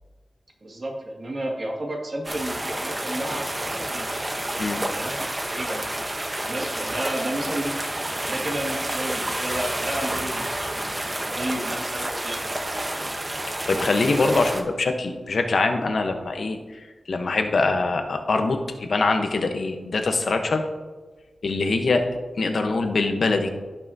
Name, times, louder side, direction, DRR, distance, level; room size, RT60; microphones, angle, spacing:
voice 1, 0.6-4.1 4.9-5.1 5.5-5.9 6.5-7.7 8.3-10.6 11.2-12.5, right 1 dB, 50° right, -1 dB, 2.0 m, -32 dB
sound 1, 2.2-14.6, right 1 dB, 25° right, 0.9 m, -29 dB
voice 2, 13.7-20.6 21.4-22.0 22.4-23.5, left 3 dB, 70° left, 5 dB, 0.9 m, -23 dB
15.5 x 5.6 x 2.7 m, 1.3 s
wide cardioid pair, 100°, 0 cm